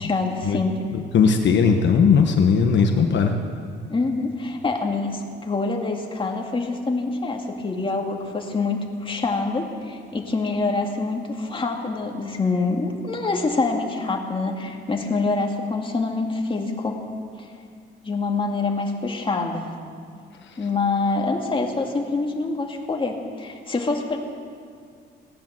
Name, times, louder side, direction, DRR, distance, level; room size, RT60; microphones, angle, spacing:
voice 1, 0.0-0.8 3.9-17.0 17.4-17.6 18.0-19.7 20.6-24.2, left 3 dB, 25° left, 1 dB, 2.3 m, -25 dB
voice 2, 0.9-3.3 20.5-20.6, left 6 dB, 65° left, 4 dB, 1.2 m, -18 dB
17.0 x 10.5 x 7.6 m, 2.2 s
cardioid pair, 90°, 20 cm